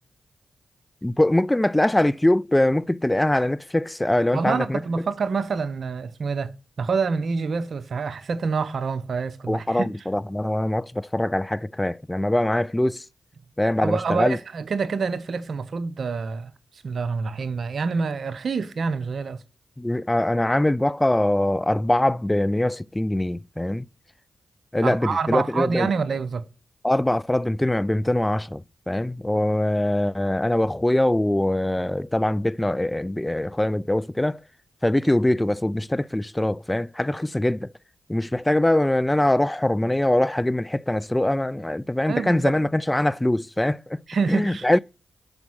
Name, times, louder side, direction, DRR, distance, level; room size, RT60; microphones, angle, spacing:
voice 1, 1.0-4.8 9.5-13.0 13.6-14.4 19.8-23.9 24.7-25.9 26.8-28.6 28.9-34.4 34.8-37.7 38.1-44.0 44.3-44.8, left 1 dB, 15° left, 0.3 m, -23 dB
voice 2, 4.3-6.5 6.8-9.9 13.8-16.5 16.8-19.4 24.8-26.4 42.1-42.5 44.1-44.7, right 5 dB, 70° right, 0.7 m, -26 dB
7.0 x 5.1 x 6.2 m
cardioid pair, 45°, 0 cm